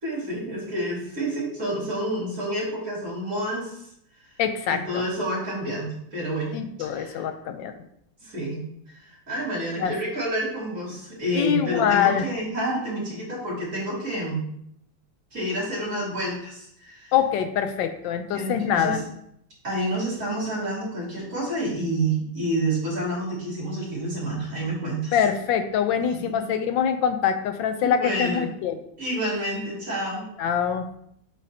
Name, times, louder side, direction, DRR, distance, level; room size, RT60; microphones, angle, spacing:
voice 1, 0.0-3.9 4.7-6.5 6.8-7.2 8.2-8.6 9.0-14.5 15.3-17.1 18.3-19.0 19.6-25.2 26.0-26.4 27.8-28.5 29.0-30.3, right 1 dB, 45° right, -6 dB, 3.2 m, -29 dB
voice 2, 4.4-5.0 6.5-7.7 9.8-9.9 11.3-12.3 17.1-19.0 25.1-28.8 30.4-30.9, left 8 dB, 80° left, 8 dB, 1.3 m, -24 dB
8.1 x 4.2 x 2.8 m, 0.72 s
omnidirectional pair, 2.0 m